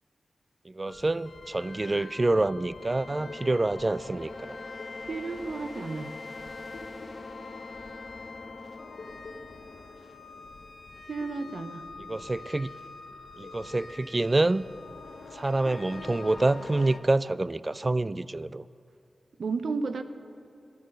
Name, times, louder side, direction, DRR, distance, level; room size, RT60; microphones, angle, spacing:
voice 1, 0.7-4.6 12.0-12.7 13.4-14.6 15.3-18.6, right 2 dB, 35° right, 18 dB, 0.3 m, -27 dB
sound 1, 0.9-17.0, left 3 dB, 65° left, 1.0 m, -43 dB
voice 2, 5.1-6.1 11.1-11.8 19.4-20.0, right 4 dB, 75° right, 10 dB, 0.7 m, -32 dB
12.5 x 11.0 x 6.5 m, 2.5 s
cardioid pair, 45°, 0 cm